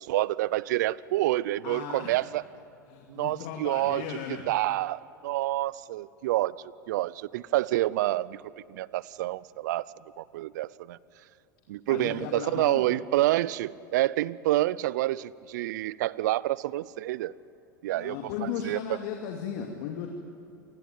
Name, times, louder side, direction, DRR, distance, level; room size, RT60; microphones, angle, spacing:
voice 1, 0.0-2.4 3.1-8.4 8.7-9.8 10.2-11.0 11.7-17.3 17.8-19.0, right 16 dB, 65° right, 21 dB, 0.7 m, -28 dB
voice 2, 1.6-2.2 2.9-4.5 11.9-13.0 17.9-20.1, left 8 dB, 60° left, 3 dB, 2.6 m, -36 dB
27.5 x 19.5 x 9.3 m, 2.7 s
hypercardioid pair, 90°, 10 cm